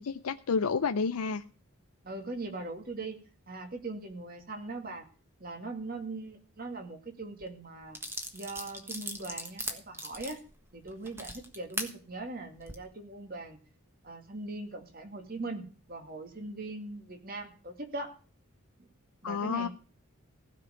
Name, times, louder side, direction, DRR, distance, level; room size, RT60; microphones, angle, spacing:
voice 1, 0.0-1.4 19.2-19.7, left 5 dB, 85° left, 9 dB, 0.5 m, -30 dB
voice 2, 2.0-3.2 3.5-5.1 5.4-8.0 8.3-10.4 10.7-13.6 14.0-18.1 19.2-19.7, right 2 dB, 40° right, 5 dB, 2.2 m, -40 dB
sound 1, 7.4-7.5 7.9-11.9 12.5-12.8, right 1 dB, 10° right, 1.4 m, -39 dB
16.0 x 5.4 x 8.9 m, 0.38 s
head